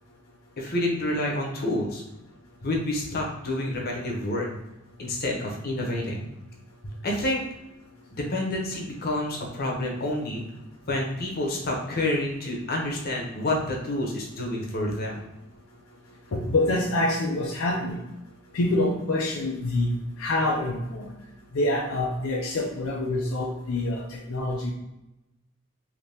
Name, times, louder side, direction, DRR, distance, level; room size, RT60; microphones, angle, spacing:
voice 1, 0.6-2.0 2.6-4.5 5.0-6.2 7.0-7.4 8.1-10.4 10.9-15.2, left 1 dB, 45° left, -1 dB, 0.8 m, -28 dB
voice 2, 16.3-18.0 18.5-21.1 21.5-24.7, left 1 dB, 75° left, -1 dB, 0.5 m, -26 dB
3.3 x 2.8 x 2.8 m, 0.93 s
head